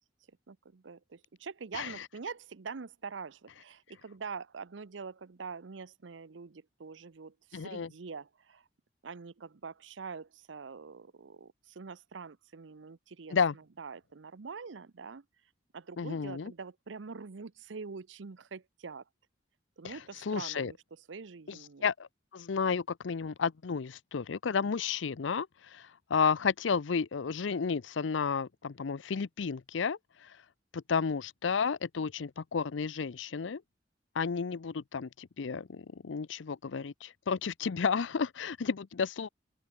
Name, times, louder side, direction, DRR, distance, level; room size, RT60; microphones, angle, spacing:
voice 1, 0.5-8.6 9.0-15.2 15.7-19.0 19.8-20.8 21.1-21.9, right 5 dB, 85° right, 0.7 m, -45 dB
voice 2, 7.5-7.9 13.3-13.5 16.0-16.5 19.8-20.7 21.5-30.4 30.7-33.6 34.1-39.3, left 5 dB, 90° left, 0.6 m, -32 dB
open air
head